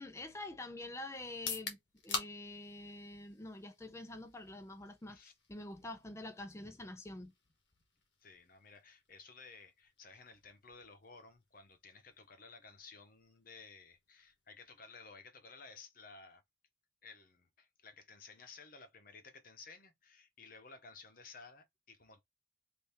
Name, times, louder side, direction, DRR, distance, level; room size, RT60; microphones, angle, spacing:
voice 1, 0.0-1.8 2.0-7.3, left 2 dB, 15° left, 0.5 m, -46 dB
sound 1, 1.3-15.2, left 4 dB, 65° left, 1.1 m, -49 dB
voice 2, 8.2-16.4 17.0-22.2, left 4 dB, 45° left, 0.9 m, -56 dB
3.5 x 2.8 x 4.2 m
head